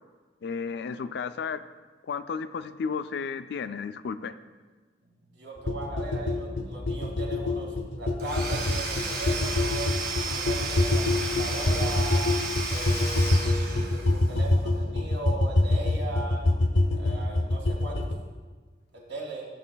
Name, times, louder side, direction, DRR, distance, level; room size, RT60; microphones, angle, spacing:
voice 1, 0.4-1.6 2.0-4.3, left 5 dB, 65° left, 12 dB, 0.3 m, -33 dB
voice 2, 5.3-9.9 10.2-12.3 12.7-16.4 16.9-18.0 18.9-19.5, right 2 dB, 80° right, -2 dB, 2.0 m, -38 dB
sound 1, 5.7-18.1, left 2 dB, 90° left, 0.7 m, -26 dB
Domestic sounds home sounds / Tools, 8.2-14.3, right 3 dB, 60° right, 1.6 m, -33 dB
13.5 x 6.4 x 2.2 m, 1.4 s
head